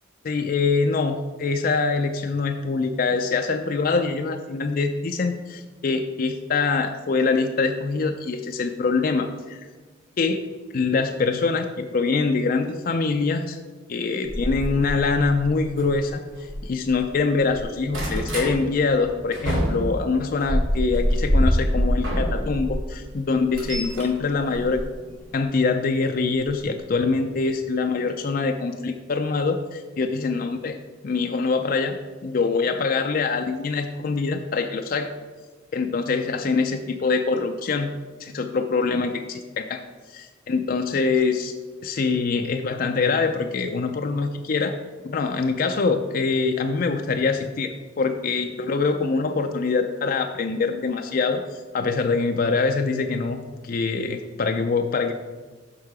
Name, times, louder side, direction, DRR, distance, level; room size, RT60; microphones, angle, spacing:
voice 1, 0.2-9.6 10.2-10.4 10.7-13.6 13.9-16.2 16.6-24.8 25.3-30.7 31.0-35.1 35.7-37.9 38.2-39.8 40.1-41.5 41.8-44.7 45.0-55.1, left 4 dB, 45° left, 5 dB, 0.4 m, -24 dB
sound 1, 14.2-17.0 17.3-18.5 19.0-22.8 23.2-25.4 26.4-26.6 27.1-27.2 27.4-27.5, equal, 85° right, 2.1 m, -26 dB
6.5 x 5.7 x 4.8 m, 1.4 s
head